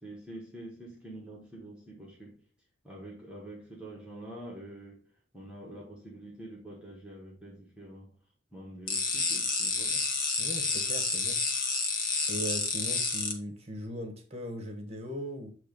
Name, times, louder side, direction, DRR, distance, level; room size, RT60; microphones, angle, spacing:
voice 1, 0.0-2.4 2.8-5.0 5.3-8.1 8.5-10.1, right 1 dB, 5° right, -4 dB, 1.4 m, -46 dB
sound 1, 8.9-13.3, left 4 dB, 45° left, 1.1 m, -29 dB
voice 2, 10.4-11.4 11.6-11.8 12.3-15.5, equal, 30° right, 3 dB, 1.1 m, -39 dB
7.6 x 3.1 x 5.1 m, 0.41 s
head